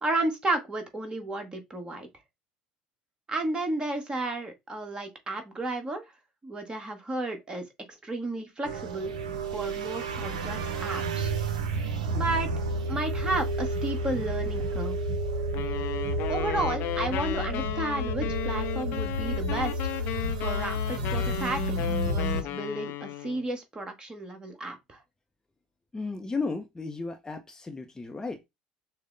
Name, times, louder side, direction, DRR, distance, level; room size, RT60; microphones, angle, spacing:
voice 1, 0.0-2.1 3.3-6.0 6.4-9.1 9.5-11.3 12.1-12.5 12.9-15.0 16.3-19.8 20.4-25.0, right 2 dB, 25° right, 1.4 m, -32 dB
sound 1, 8.6-22.4, right 1 dB, 70° right, 0.6 m, -30 dB
sound 2, 15.5-23.5, left 14 dB, 50° left, 0.4 m, -35 dB
voice 2, 25.9-28.5, left 3 dB, 15° left, 0.6 m, -34 dB
6.3 x 2.1 x 3.8 m
figure-of-eight pair, 60°, 4 cm